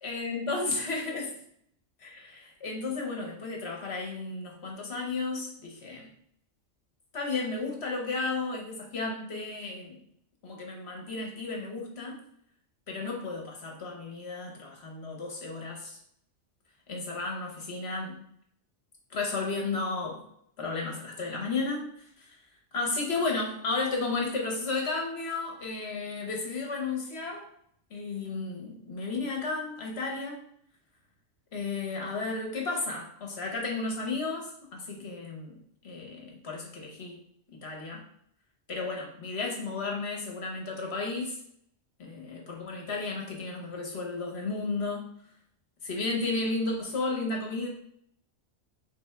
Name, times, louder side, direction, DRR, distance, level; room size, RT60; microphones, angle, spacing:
voice 1, 0.0-1.3 2.0-6.1 7.1-10.0 10.4-12.2 12.9-16.0 16.9-18.2 19.1-20.2 20.6-21.9 22.2-22.4 22.7-27.5 27.9-30.4 31.5-35.6 35.8-37.2 37.6-38.0 38.7-41.4 42.0-45.1 45.8-47.7, left 3 dB, 55° left, 0 dB, 1.2 m, -33 dB
3.5 x 3.5 x 4.4 m, 0.67 s
omnidirectional pair, 1.3 m